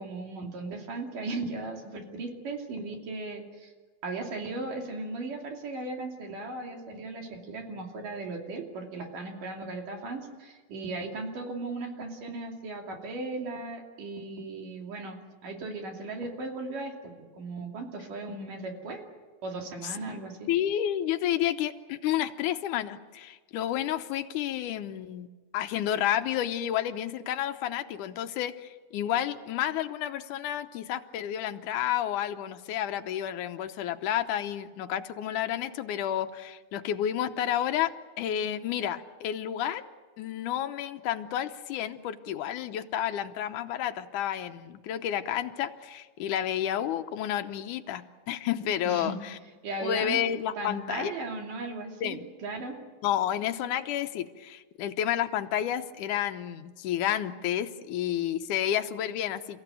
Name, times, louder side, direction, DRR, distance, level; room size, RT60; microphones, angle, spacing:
voice 1, 0.0-3.7 4.0-19.0 19.4-20.5 48.9-49.2 49.6-50.2 50.6-52.7, right 3 dB, 65° right, 2 dB, 4.2 m, -37 dB
voice 2, 20.5-25.3 25.5-39.8 40.2-49.4 49.8-51.1 52.0-52.3 53.0-59.6, left 11 dB, 70° left, 8 dB, 2.1 m, -30 dB
30.0 x 15.5 x 9.2 m, 1.4 s
omnidirectional pair, 4.2 m